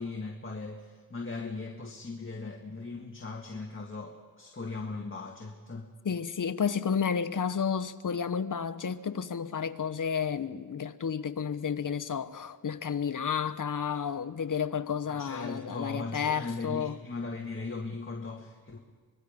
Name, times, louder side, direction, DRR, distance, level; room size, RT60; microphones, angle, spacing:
voice 1, 0.0-5.9 15.1-18.8, left 3 dB, 35° left, 1.9 m, -38 dB
voice 2, 6.0-17.0, left 7 dB, 55° left, 1.0 m, -31 dB
25.5 x 21.5 x 5.2 m
wide cardioid pair, 75°, 38 cm